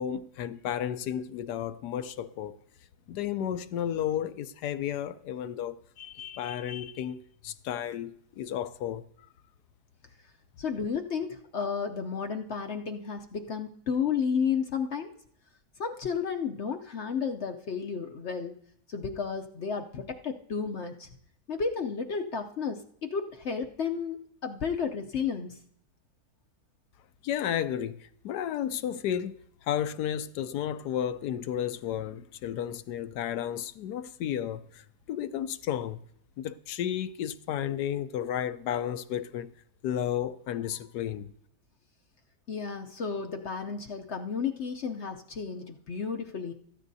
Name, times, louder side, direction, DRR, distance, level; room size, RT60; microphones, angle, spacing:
voice 1, 0.0-2.6 3.1-9.0 27.2-36.0 36.4-39.5 39.8-41.3, left 10 dB, 80° left, 1.2 m, -33 dB
voice 2, 10.6-15.1 15.8-18.6 18.9-21.1 21.5-25.6 42.5-46.5, left 6 dB, 55° left, 0.8 m, -32 dB
16.5 x 13.5 x 2.7 m
omnidirectional pair, 1.8 m